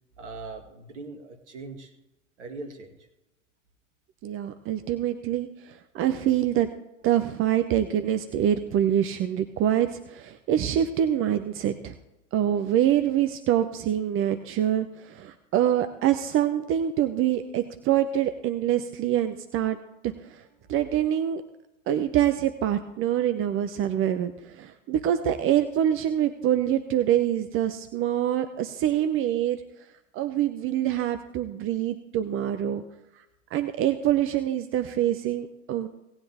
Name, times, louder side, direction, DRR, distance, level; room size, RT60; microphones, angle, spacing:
voice 1, 0.2-1.9 2.4-3.1 20.6-20.7, right 3 dB, 70° right, 5 dB, 2.2 m, -41 dB
voice 2, 4.2-6.7 7.0-11.9 12.3-19.8 20.0-20.4 20.7-21.4 21.9-29.6 30.1-32.8 33.5-35.9, right 11 dB, 35° right, 9 dB, 0.8 m, -25 dB
17.5 x 9.7 x 3.5 m, 0.96 s
figure-of-eight pair, 80°, 37 cm